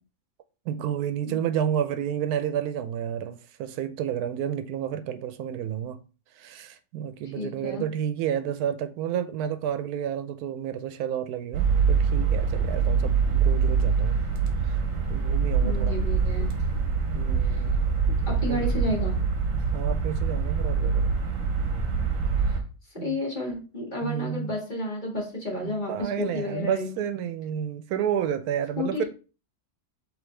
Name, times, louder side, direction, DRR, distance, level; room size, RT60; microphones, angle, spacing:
voice 1, 0.7-6.0 6.4-14.2 14.7-14.8 15.1-16.0 17.1-17.8 18.5-18.7 19.7-21.1 23.0-23.2 24.0-24.5 25.6-29.0, right 9 dB, 85° right, 1.1 m, -30 dB
voice 2, 7.3-7.8 15.6-16.5 17.4-17.6 18.4-19.2 22.4-22.6 23.0-26.9 28.8-29.0, left 1 dB, 30° left, 1.7 m, -31 dB
sound 1, 11.5-22.6, right 5 dB, 60° right, 1.3 m, -24 dB
5.1 x 3.3 x 3.1 m
omnidirectional pair, 1.6 m